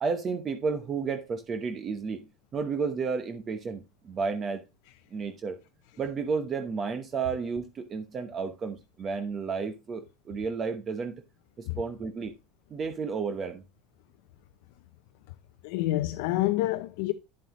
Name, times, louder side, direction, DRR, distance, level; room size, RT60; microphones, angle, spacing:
voice 1, 0.0-2.3 2.5-4.6 5.1-5.6 6.0-11.2 11.6-12.3 12.7-13.6, right 5 dB, 30° right, 0.9 m, -32 dB
voice 2, 15.6-17.1, left 16 dB, 75° left, 0.6 m, -27 dB
8.8 x 7.5 x 3.0 m
supercardioid pair, 120°, 0 cm